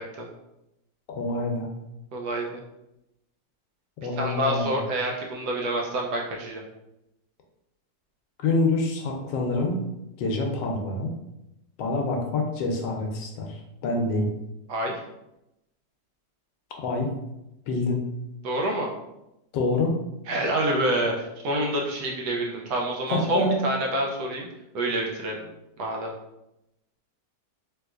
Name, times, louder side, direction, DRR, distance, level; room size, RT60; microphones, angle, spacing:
voice 1, 1.1-1.7 4.0-4.8 8.4-9.8 10.2-11.1 11.8-14.3 16.8-17.1 17.7-18.0 19.5-20.0 23.1-23.6, left 2 dB, 80° left, 2 dB, 1.3 m, -26 dB
voice 2, 2.1-2.6 4.2-6.6 14.7-15.0 18.4-18.9 20.3-24.5 24.7-25.4 25.8-26.1, right 1 dB, 75° right, -1 dB, 1.0 m, -27 dB
3.3 x 3.0 x 2.3 m, 0.89 s
omnidirectional pair, 2.0 m